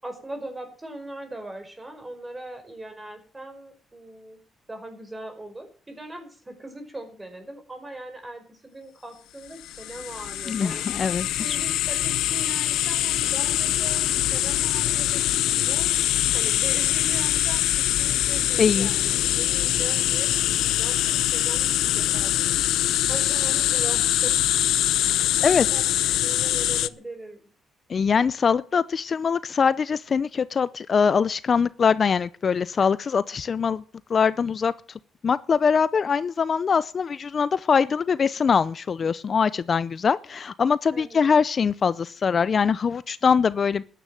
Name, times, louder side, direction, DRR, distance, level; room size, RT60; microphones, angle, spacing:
voice 1, 0.0-4.4 4.7-15.9 16.3-22.3 23.1-24.4 25.4-25.8 26.1-27.4 40.9-41.2, right 1 dB, 20° right, 5.3 m, -40 dB
sound 1, 9.6-26.9, left 13 dB, 85° left, 0.6 m, -23 dB
voice 2, 10.5-11.6 18.6-18.9 25.4-25.7 27.9-33.8 34.1-34.7 35.2-43.8, left 6 dB, 45° left, 0.6 m, -22 dB
13.5 x 10.0 x 7.7 m
cardioid pair, 90°, 0 cm